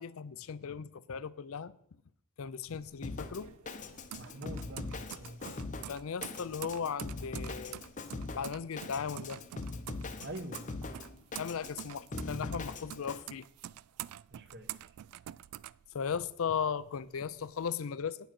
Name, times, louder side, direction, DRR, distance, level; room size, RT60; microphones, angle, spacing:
voice 1, 0.0-1.7 2.4-3.5 5.9-7.8 8.3-9.4 11.4-13.5 15.9-18.2, left 6 dB, 70° left, 17 dB, 0.5 m, -37 dB
sound 1, 2.6-16.5 16.8-17.7, right 12 dB, 85° right, 0.3 m, -47 dB
Drum kit, 3.0-13.2, left 3 dB, 35° left, 0.7 m, -42 dB
voice 2, 4.2-5.4 10.2-10.7 14.3-14.9, right 1 dB, 50° right, 8 dB, 1.1 m, -45 dB
8.9 x 7.1 x 5.9 m, 0.68 s
head